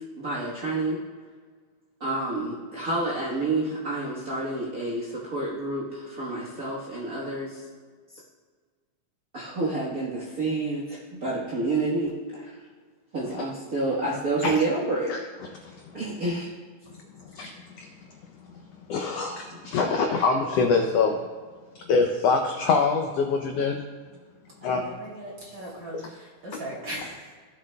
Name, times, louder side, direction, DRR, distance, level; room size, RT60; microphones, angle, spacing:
voice 1, 0.2-1.0 2.0-7.7 9.3-12.6 13.1-15.1 15.9-16.5, right 2 dB, 55° right, -6 dB, 0.9 m, -29 dB
voice 2, 18.9-21.2 21.9-23.8 24.6-24.8, left 4 dB, 80° left, 3 dB, 1.4 m, -24 dB
voice 3, 24.6-27.3, right 1 dB, 40° right, -5 dB, 3.4 m, -39 dB
16.5 x 7.4 x 2.2 m, 1.5 s
omnidirectional pair, 3.6 m